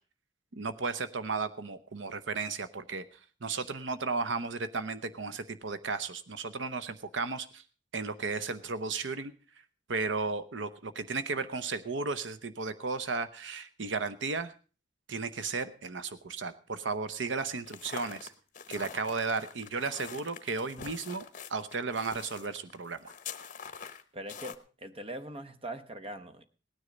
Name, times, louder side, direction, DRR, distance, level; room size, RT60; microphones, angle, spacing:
voice 1, 0.5-3.0 3.4-7.6 7.9-9.3 9.9-14.5 15.1-18.3 18.7-21.2 21.5-23.1, right 4 dB, 85° right, 13 dB, 0.9 m, -34 dB
sound 1, 17.6-24.6, left 6 dB, 45° left, 0.9 m, -45 dB
voice 2, 24.1-26.4, right 1 dB, 30° right, 10 dB, 1.0 m, -41 dB
18.0 x 9.8 x 5.1 m, 0.37 s
head